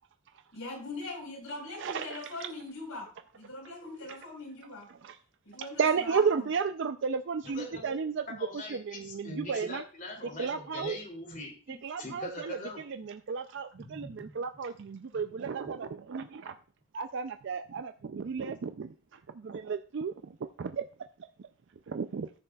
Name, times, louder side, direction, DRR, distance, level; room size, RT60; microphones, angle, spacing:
voice 1, 0.5-4.9 5.4-6.5, left 2 dB, 70° left, 0 dB, 4.4 m, -41 dB
voice 2, 1.8-2.2 4.1-4.2 5.0-5.2 5.8-8.2 8.5-9.8 10.4-11.0 11.7-16.6 16.9-20.9 21.4-21.5 21.9-22.3, right 5 dB, 50° right, 8 dB, 0.4 m, -33 dB
voice 3, 7.5-8.0 8.3-13.1 13.8-14.4 18.2-18.3, left 1 dB, 35° left, 0 dB, 2.6 m, -42 dB
14.0 x 6.6 x 2.3 m, 0.38 s
head